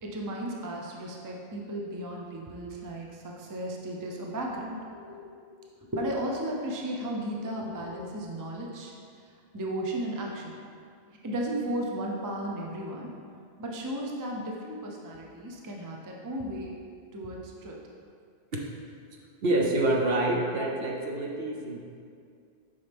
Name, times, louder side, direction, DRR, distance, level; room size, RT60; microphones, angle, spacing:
voice 1, 0.0-5.2 5.5-5.6 5.9-8.9 9.5-10.6 11.2-13.1 13.6-16.7 17.1-17.8, right 1 dB, 20° right, -1 dB, 0.5 m, -35 dB
voice 2, 19.4-21.8, right 2 dB, 60° right, -1 dB, 0.9 m, -27 dB
7.3 x 5.6 x 3.5 m, 2.3 s
omnidirectional pair, 1.2 m